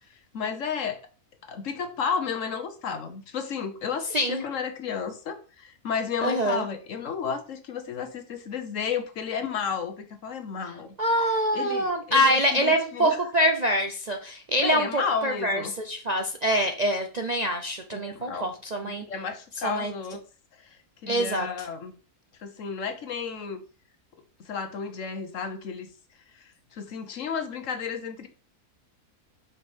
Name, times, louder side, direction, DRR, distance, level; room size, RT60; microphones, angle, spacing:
voice 1, 0.3-1.0 1.5-10.9 11.5-13.2 14.6-15.7 17.9-18.5 18.8-20.2 21.0-21.9 22.4-23.6 24.4-25.9 26.3-28.3, left 6 dB, 60° left, 1.2 m, -32 dB
voice 2, 4.1-4.4 6.2-6.6 11.0-19.0 19.6-19.9 21.1-21.7, equal, 45° right, 0.5 m, -25 dB
5.6 x 4.5 x 5.3 m
omnidirectional pair, 1.5 m